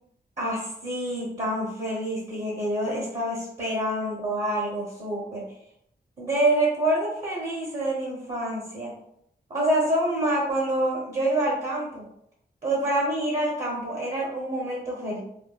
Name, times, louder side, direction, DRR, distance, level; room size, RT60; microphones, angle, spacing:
voice 1, 0.4-5.4 6.2-8.9 9.5-12.0 12.6-15.2, right 1 dB, 45° right, -5 dB, 0.7 m, -27 dB
2.6 x 2.1 x 2.3 m, 0.72 s
wide cardioid pair, 120°, 17 cm